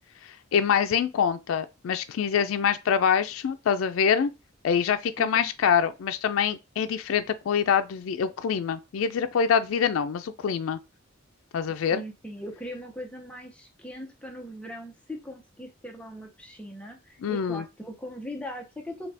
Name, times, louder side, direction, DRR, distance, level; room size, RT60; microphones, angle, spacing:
voice 1, 0.5-4.3 4.6-10.8 11.5-12.0 17.2-17.6, left 7 dB, 85° left, 0.4 m, -25 dB
voice 2, 5.2-5.5 11.7-19.1, equal, 5° left, 0.6 m, -40 dB
4.0 x 2.2 x 3.3 m
head